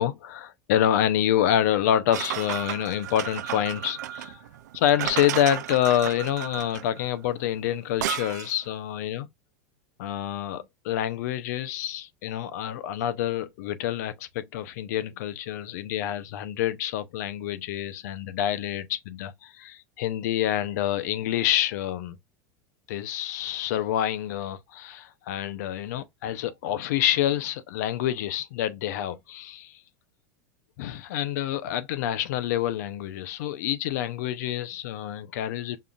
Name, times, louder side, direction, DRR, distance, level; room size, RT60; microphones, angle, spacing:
voice 1, 0.0-4.4 4.7-9.3 10.0-22.2 22.9-29.8 30.8-35.8, left 11 dB, 75° left, 0.6 m, -27 dB
sound 1, 2.1-8.6, right 13 dB, 85° right, 0.4 m, -33 dB
5.4 x 2.5 x 2.3 m
supercardioid pair, 120°, 9 cm